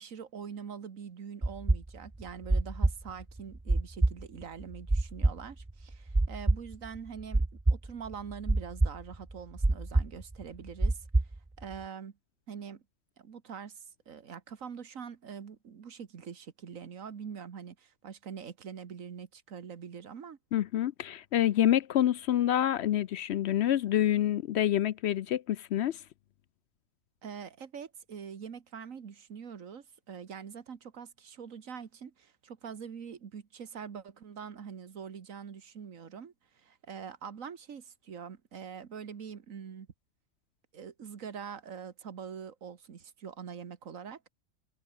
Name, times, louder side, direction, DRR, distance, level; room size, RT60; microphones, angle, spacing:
voice 1, 0.0-11.1 11.6-12.1 12.5-12.8 13.2-20.4 27.2-39.9 40.7-44.2, right 7 dB, 85° right, 1.8 m, -44 dB
sound 1, 1.4-11.8, right 2 dB, 15° right, 0.5 m, -27 dB
voice 2, 20.5-26.0, left 11 dB, 65° left, 0.7 m, -27 dB
omnidirectional pair, 1.4 m